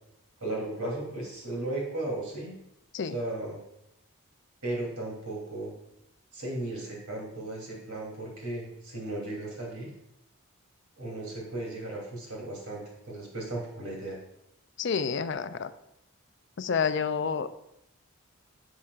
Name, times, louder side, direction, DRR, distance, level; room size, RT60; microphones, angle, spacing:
voice 1, 0.4-2.5 3.0-3.6 4.6-5.7 6.3-9.9 11.0-14.2, right 2 dB, 90° right, -2 dB, 3.1 m, -35 dB
voice 2, 14.8-15.7 16.6-17.5, left 6 dB, 55° left, 12 dB, 0.4 m, -29 dB
11.0 x 7.1 x 2.5 m, 0.83 s
head